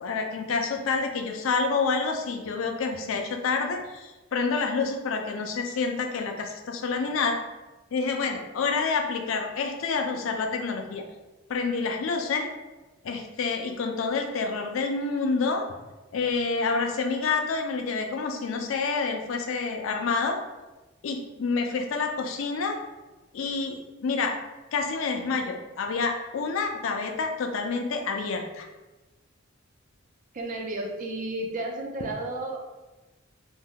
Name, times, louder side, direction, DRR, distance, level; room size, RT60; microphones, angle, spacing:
voice 1, 0.0-7.4 7.9-11.0 11.5-12.5 13.0-15.7 16.1-20.4 21.0-22.8 23.3-24.4 24.7-28.7, left 4 dB, 70° left, 4 dB, 0.4 m, -28 dB
voice 2, 30.3-32.6, right 2 dB, 40° right, 2 dB, 0.4 m, -32 dB
2.7 x 2.2 x 3.5 m, 1.1 s
head